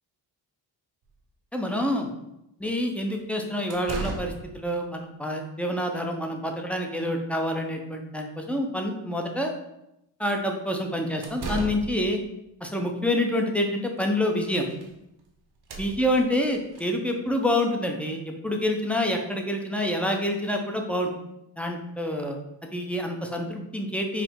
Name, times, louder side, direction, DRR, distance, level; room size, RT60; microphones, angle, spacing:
sound 1, 1.1-1.2 3.1-3.2 3.7-4.5 11.0-12.2 14.0-14.1 14.3-14.9 15.2-15.3 15.6-16.8, right 3 dB, 60° right, 0.9 m, -36 dB
voice 1, 1.5-2.1 2.6-9.5 10.2-12.2 12.6-14.7 15.8-21.1 21.6-24.2, left 1 dB, 5° left, 2 dB, 0.6 m, -27 dB
4.8 x 2.0 x 3.6 m, 0.86 s
cardioid pair, 60°, 45 cm